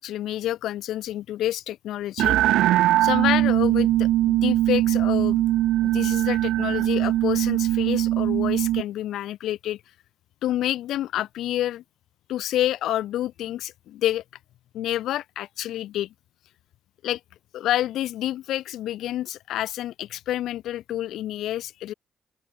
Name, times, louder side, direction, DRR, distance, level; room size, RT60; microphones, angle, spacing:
voice 1, 0.0-2.4 3.0-5.4 5.8-9.8 10.4-11.8 12.3-14.2 14.7-16.1 17.0-17.2 17.5-21.9, left 13 dB, 75° left, 1.7 m, -28 dB
sound 1, 2.2-8.8, right 14 dB, 80° right, 1.0 m, -21 dB
open air
hypercardioid pair, 45°, 0 cm